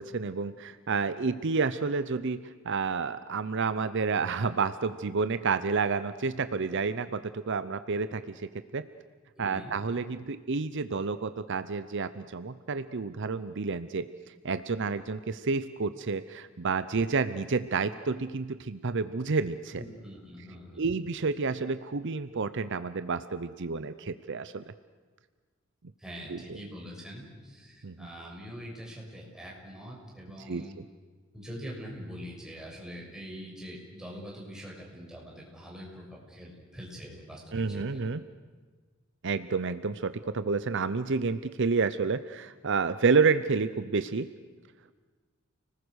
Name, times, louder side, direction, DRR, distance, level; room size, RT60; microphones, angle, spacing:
voice 1, 0.0-8.8 9.4-19.8 20.8-24.6 26.3-26.6 27.8-28.1 30.4-30.6 37.5-38.2 39.2-44.3, right 4 dB, 60° right, 12 dB, 0.7 m, -30 dB
voice 2, 9.3-9.7 19.7-20.9 26.0-30.7 31.3-38.0, equal, 5° right, -3 dB, 6.5 m, -44 dB
30.0 x 20.0 x 6.4 m, 1.4 s
head